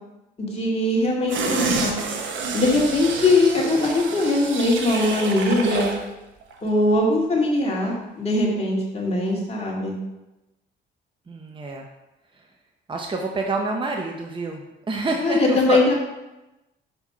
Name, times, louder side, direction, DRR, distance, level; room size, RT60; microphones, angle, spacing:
voice 1, 0.4-2.0 2.5-5.9 6.6-10.0 15.2-15.9, left 2 dB, 30° left, -3 dB, 2.2 m, -21 dB
sound 1, 1.3-6.0 6.4-6.5, right 4 dB, 75° right, 1.1 m, -28 dB
voice 2, 11.3-11.8 12.9-14.6 14.9-15.8, right 3 dB, 25° right, 2 dB, 0.8 m, -27 dB
5.4 x 4.9 x 5.5 m, 1.0 s
cardioid pair, 90°, 20 cm